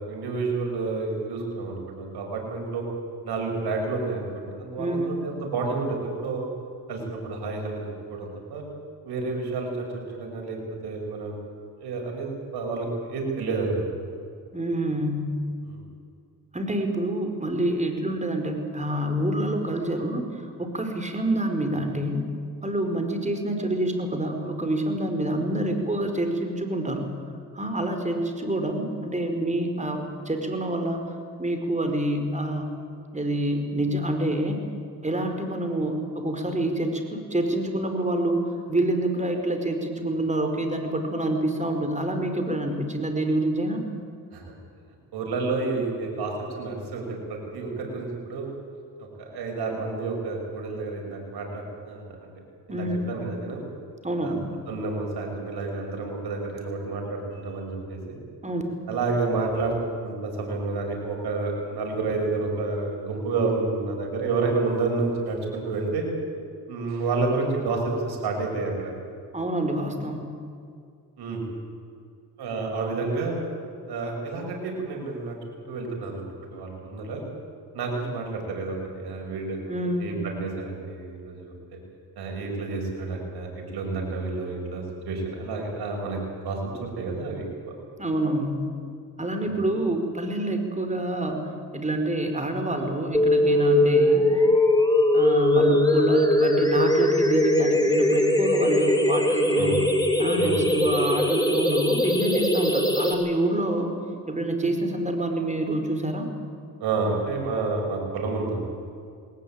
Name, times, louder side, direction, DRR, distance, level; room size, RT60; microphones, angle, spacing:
voice 1, 0.0-2.8 3.2-6.5 6.9-7.8 8.1-8.6 9.0-10.6 10.8-11.4 11.8-13.9 15.6-15.8 44.3-44.4 45.1-48.5 49.0-52.3 52.7-53.6 54.2-54.4 54.7-58.2 58.9-59.7 60.0-66.1 66.7-68.9 71.2-71.4 72.4-73.4 73.9-75.4 75.7-77.2 77.7-79.6 80.0-81.5 82.2-86.2 86.4-87.4 89.4-89.6 99.6-99.8 100.4-100.6 106.8-108.7, right 3 dB, 75° right, 0 dB, 6.6 m, -30 dB
voice 2, 4.8-5.2 14.5-15.3 16.5-22.2 22.6-27.1 27.5-31.1 31.4-32.8 33.1-34.6 35.0-43.8 52.7-53.1 54.0-54.4 58.4-58.6 69.3-70.3 79.7-80.1 88.0-88.7 89.2-94.3 95.1-99.8 100.2-103.9 104.3-106.3, right 1 dB, 20° right, 5 dB, 4.8 m, -27 dB
sound 1, 93.1-103.1, left 1 dB, 10° left, 4.4 m, -21 dB
20.0 x 19.0 x 8.9 m, 2.3 s
supercardioid pair, 65°, 39 cm